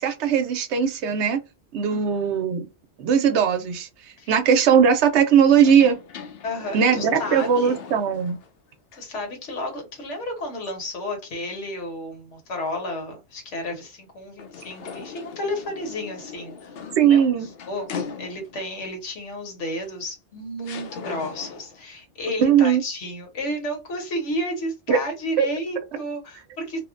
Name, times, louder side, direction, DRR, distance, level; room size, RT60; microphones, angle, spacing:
voice 1, 0.0-1.4 1.7-2.7 3.0-3.9 4.3-6.0 6.7-8.4 17.0-17.5 22.4-22.8 24.9-25.0 25.4-25.5, right 7 dB, 75° right, 0.9 m, -19 dB
sound 1, 5.6-8.5 8.9-9.0 14.4-18.7 19.8-19.9 20.6-21.8, left 6 dB, 65° left, 0.7 m, -38 dB
voice 2, 6.4-7.7 8.9-17.2 17.7-17.9 18.2-26.8, left 1 dB, 80° left, 1.4 m, -32 dB
2.8 x 2.1 x 2.4 m
omnidirectional pair, 1.2 m